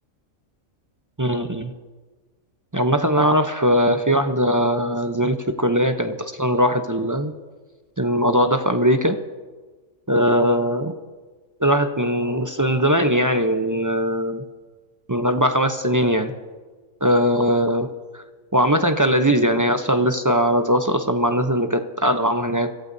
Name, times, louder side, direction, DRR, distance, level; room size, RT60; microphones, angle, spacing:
voice 1, 1.2-1.7 2.7-7.3 8.0-9.2 10.1-10.9 11.6-14.4 15.1-16.3 17.0-17.9 18.5-22.7, equal, 20° right, 6 dB, 0.5 m, -20 dB
26.5 x 15.0 x 2.7 m, 1.4 s
omnidirectional pair, 1.4 m